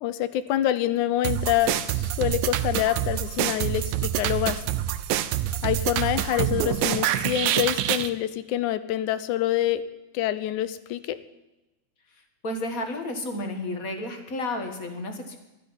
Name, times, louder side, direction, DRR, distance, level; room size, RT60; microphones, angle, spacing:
voice 1, 0.0-4.6 5.6-9.8 10.1-11.2, left 13 dB, 85° left, 14 dB, 2.3 m, -26 dB
sound 1, 1.2-8.1, right 12 dB, 90° right, 2.2 m, -26 dB
voice 2, 12.4-15.4, left 1 dB, 35° left, 5 dB, 1.7 m, -31 dB
12.5 x 9.8 x 9.7 m, 0.99 s
omnidirectional pair, 3.5 m